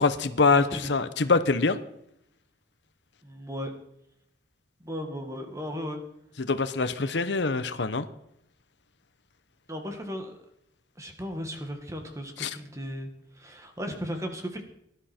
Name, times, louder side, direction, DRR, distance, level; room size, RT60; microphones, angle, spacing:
voice 1, 0.0-0.6 0.9-1.8 6.4-8.1 12.4-12.5, left 4 dB, 70° left, 12 dB, 0.9 m, -24 dB
voice 2, 0.5-1.0 3.2-3.7 4.8-6.0 9.7-10.3 11.0-13.1 13.4-14.6, equal, 15° right, 5 dB, 1.9 m, -36 dB
18.0 x 11.5 x 4.4 m, 0.77 s
head